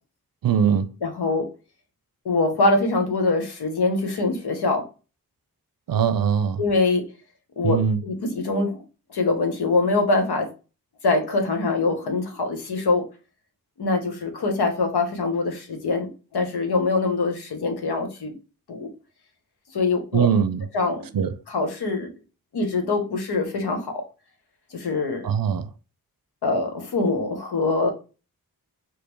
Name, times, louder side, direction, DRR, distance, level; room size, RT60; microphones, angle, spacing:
voice 1, 0.4-0.9 5.9-6.6 7.6-8.0 20.1-20.6 21.1-21.3 25.2-25.7, right 8 dB, 60° right, 0.5 m, -21 dB
voice 2, 1.0-1.5 2.2-4.8 6.6-7.0 7.6-8.8 9.1-10.5 11.0-13.0 13.8-18.3 18.7-18.9 19.7-20.3 20.7-21.1 21.5-22.1 22.5-24.0 24.7-25.3 26.4-27.9, left 3 dB, 80° left, 1.0 m, -23 dB
4.9 x 2.0 x 3.1 m
cardioid pair, 40°, 38 cm